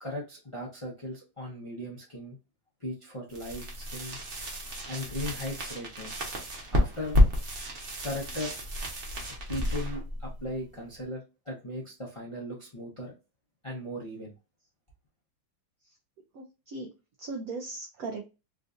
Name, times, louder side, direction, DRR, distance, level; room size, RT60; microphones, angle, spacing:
voice 1, 0.0-2.4 2.8-4.2 4.9-6.2 6.7-7.2 8.0-8.5 9.5-13.1 13.6-14.3, left 1 dB, 50° left, -3 dB, 0.3 m, -37 dB
sound 1, 3.3-11.0, left 1 dB, 45° right, 1.0 m, -30 dB
voice 2, 16.4-16.9 17.2-18.3, right 3 dB, 80° right, 2 dB, 0.7 m, -38 dB
3.7 x 2.5 x 2.4 m, 0.28 s
omnidirectional pair, 2.1 m